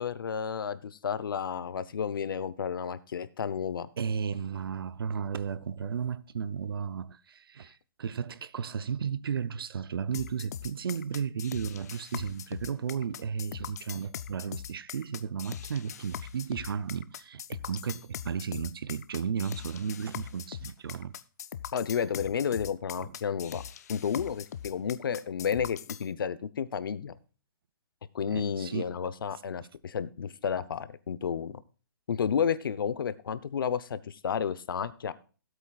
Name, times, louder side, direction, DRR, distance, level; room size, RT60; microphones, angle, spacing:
voice 1, 0.0-3.9 21.7-23.6 23.9-27.1 28.1-31.5 32.1-35.1, left 7 dB, 70° left, 0.8 m, -31 dB
voice 2, 4.0-21.1 23.0-23.1 28.3-28.9, right 7 dB, 80° right, 0.7 m, -34 dB
sound 1, 10.1-26.1, left 9 dB, 45° left, 0.5 m, -41 dB
17.0 x 8.2 x 2.4 m
hypercardioid pair, 170°, 12 cm